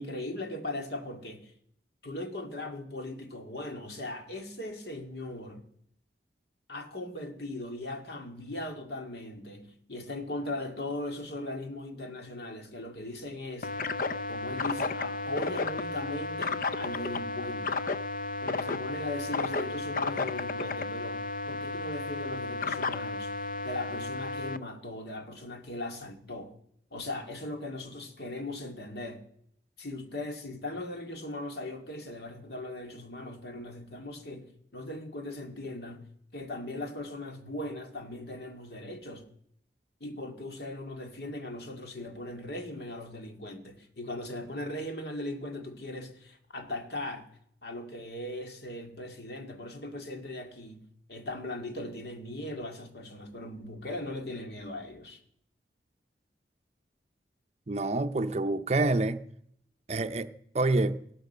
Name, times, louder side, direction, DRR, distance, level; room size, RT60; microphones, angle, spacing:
voice 1, 0.0-1.5 2.0-5.7 6.7-13.7 14.3-17.8 18.4-26.6 26.9-29.2 29.8-36.0 36.3-39.3 40.0-47.3 47.6-55.2, left 1 dB, 65° left, 2.1 m, -39 dB
sound 1, 13.6-24.6, left 3 dB, 50° left, 0.5 m, -33 dB
voice 2, 57.7-59.2 59.9-61.0, right 2 dB, 35° right, 0.6 m, -27 dB
16.5 x 12.0 x 6.7 m
head